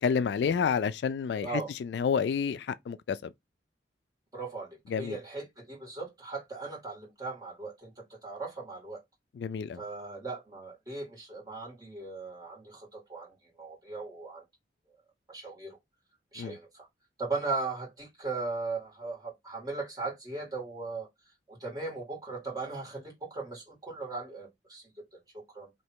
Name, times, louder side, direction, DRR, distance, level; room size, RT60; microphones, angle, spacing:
voice 1, 0.0-3.2 4.9-5.2 9.4-9.8 16.4-16.5, left 6 dB, 65° left, 0.3 m, -29 dB
voice 2, 1.4-1.7 4.3-7.9 8.2-9.0 9.7-14.4 15.3-15.8 16.3-16.9 17.2-21.1 21.5-25.7, right 3 dB, 20° right, 2.2 m, -38 dB
3.2 x 2.9 x 4.5 m
head